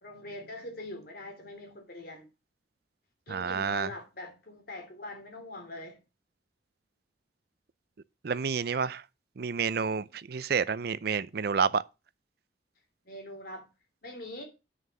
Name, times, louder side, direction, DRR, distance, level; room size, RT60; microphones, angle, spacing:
voice 1, 0.0-2.3 3.3-6.0 13.0-13.7 14.0-14.4, left 1 dB, 55° left, 3.1 m, -43 dB
voice 2, 3.3-3.9 8.2-9.0 9.4-11.8, right 6 dB, 60° right, 0.5 m, -29 dB
9.2 x 6.5 x 5.4 m
head